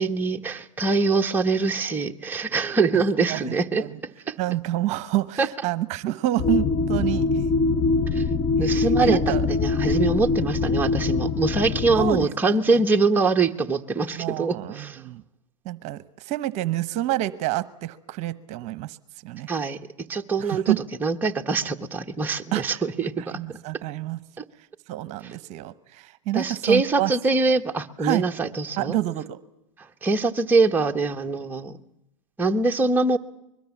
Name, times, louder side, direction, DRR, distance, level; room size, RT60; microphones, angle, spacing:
voice 1, 0.0-3.9 4.3-4.4 5.4-5.5 8.1-8.2 8.6-15.0 19.5-19.8 20.1-20.8 21.0-23.6 24.4-24.5 25.2-25.3 26.3-29.0 30.0-31.8 32.4-33.2, right 3 dB, 10° right, 2 dB, 1.2 m, -23 dB
voice 2, 3.3-4.0 4.4-7.4 8.6-9.4 12.0-12.3 14.2-15.2 15.6-19.0 19.2-19.5 20.4-20.8 22.5-22.8 23.2-24.2 24.9-27.1 28.0-28.2 28.8-29.4, right 15 dB, 45° right, 16 dB, 1.1 m, -28 dB
sound 1, 6.4-12.3, left 3 dB, 25° left, 1.2 m, -23 dB
24.0 x 22.0 x 7.3 m, 0.87 s
hypercardioid pair, 115°, 16 cm